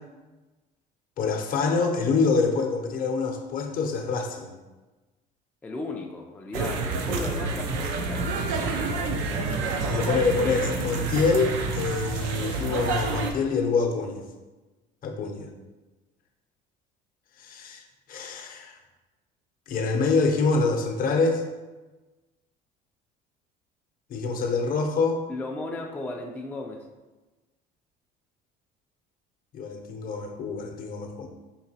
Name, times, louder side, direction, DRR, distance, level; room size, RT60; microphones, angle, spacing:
voice 1, 1.2-4.6 9.9-14.2 15.0-15.5 17.4-17.8 18.1-18.8 19.7-21.4 24.1-25.2 29.5-31.3, left 4 dB, 50° left, 4 dB, 0.6 m, -26 dB
voice 2, 5.6-8.8 9.1-10.1 25.3-26.9, left 2 dB, 10° left, 1 dB, 0.3 m, -36 dB
sound 1, 6.5-13.3, right 3 dB, 90° right, 0.5 m, -28 dB
4.7 x 2.9 x 2.8 m, 1.2 s
cardioid pair, 115°, 18 cm